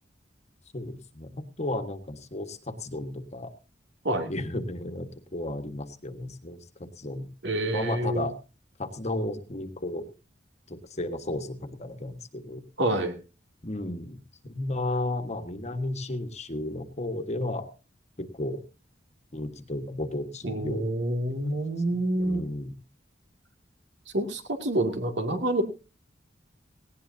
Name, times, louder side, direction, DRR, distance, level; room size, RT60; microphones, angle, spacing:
voice 1, 0.7-3.5 4.3-7.3 7.7-8.3 8.8-10.0 10.7-12.6 13.6-14.2 14.4-17.7 18.2-18.6 19.3-20.9 21.9-22.7, left 1 dB, 40° left, 8 dB, 1.5 m, -33 dB
voice 2, 7.4-8.3 12.8-13.1 20.4-22.4 24.1-25.6, right 1 dB, 70° right, 5 dB, 2.5 m, -27 dB
18.0 x 17.5 x 2.8 m, 0.31 s
head